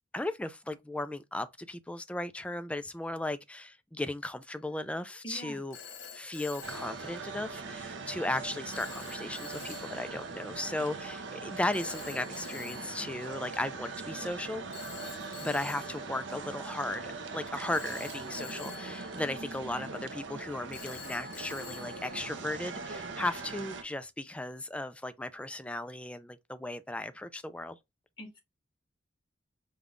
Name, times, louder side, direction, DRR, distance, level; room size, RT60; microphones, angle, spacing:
voice 1, 0.1-5.8 6.1-14.7 15.4-27.8, left 1 dB, 5° left, 0.4 m, -36 dB
Telephone, 4.4-4.8 5.7-7.7 8.7-10.4 11.7-13.9 14.7-17.0 17.7-20.0 20.7-22.9, left 7 dB, 85° left, 1.2 m, -48 dB
voice 2, 5.2-5.6 28.2-28.4, right 1 dB, 25° left, 1.6 m, -43 dB
sound 1, 6.6-23.8, right 4 dB, 70° right, 0.7 m, -41 dB
5.3 x 2.3 x 3.6 m
head